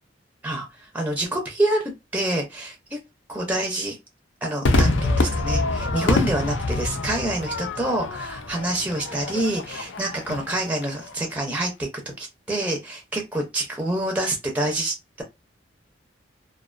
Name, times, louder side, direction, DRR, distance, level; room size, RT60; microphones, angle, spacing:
voice 1, 0.4-3.0 3.3-4.0 4.4-15.2, right 1 dB, 10° right, 0.4 m, -27 dB
Crowd / Fireworks, 4.6-11.2, left 2 dB, 85° left, 0.5 m, -25 dB
2.4 x 2.2 x 2.4 m
head